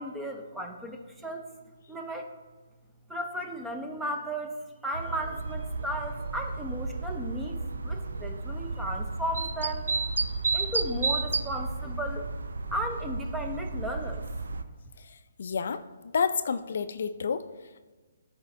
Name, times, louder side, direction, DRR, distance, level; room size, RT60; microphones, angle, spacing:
voice 1, 0.0-1.5 1.9-2.3 3.1-4.6 4.8-9.8 10.5-12.3 12.7-14.3, equal, 5° right, 3 dB, 0.5 m, -35 dB
sound 1, 4.9-14.6, right 3 dB, 90° right, 0.4 m, -32 dB
voice 2, 15.4-15.8 16.1-17.5, left 6 dB, 60° left, 11 dB, 0.3 m, -29 dB
9.7 x 4.2 x 2.7 m, 1.3 s
hypercardioid pair, 160°, 0 cm